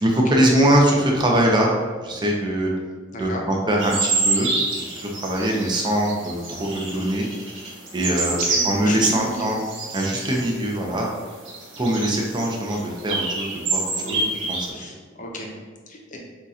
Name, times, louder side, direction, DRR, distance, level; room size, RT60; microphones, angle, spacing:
voice 1, 0.0-1.7 2.0-2.7 3.2-4.5 5.0-7.3 7.9-9.6 9.9-11.1 11.8-14.2 14.5-14.7, right 1 dB, 25° right, -1 dB, 0.7 m, -22 dB
voice 2, 3.1-3.4 8.3-9.5 14.0-14.3 14.7-15.5 15.9-16.2, left 1 dB, 40° left, 0 dB, 0.7 m, -34 dB
sound 1, 3.8-10.7 11.0-11.1 11.3-14.7, right 3 dB, 90° right, 1.0 m, -27 dB
7.3 x 2.5 x 2.8 m, 1.4 s
head